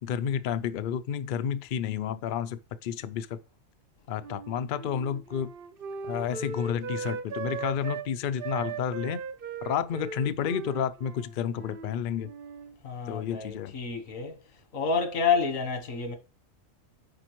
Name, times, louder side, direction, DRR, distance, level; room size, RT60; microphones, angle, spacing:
voice 1, 0.0-3.4 4.1-5.5 6.1-9.2 9.6-12.3 13.1-13.7, left 8 dB, 60° left, 0.6 m, -31 dB
Wind instrument woodwind instrument, 4.2-8.1 8.4-12.0 12.2-12.8, right 5 dB, 55° right, 0.7 m, -38 dB
voice 2, 12.8-14.3 14.7-16.2, left 5 dB, 90° left, 1.5 m, -29 dB
10.0 x 4.2 x 3.0 m
omnidirectional pair, 1.3 m